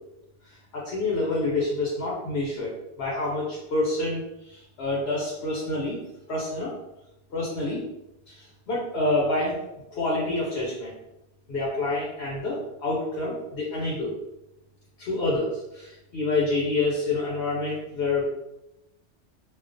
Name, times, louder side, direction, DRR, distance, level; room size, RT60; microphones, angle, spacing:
voice 1, 0.5-2.7 3.0-6.0 6.3-6.7 7.3-7.8 8.3-9.6 9.9-10.9 11.5-14.1 15.0-18.2, left 2 dB, 65° left, -5 dB, 0.8 m, -27 dB
2.3 x 2.2 x 2.4 m, 0.91 s
omnidirectional pair, 1.2 m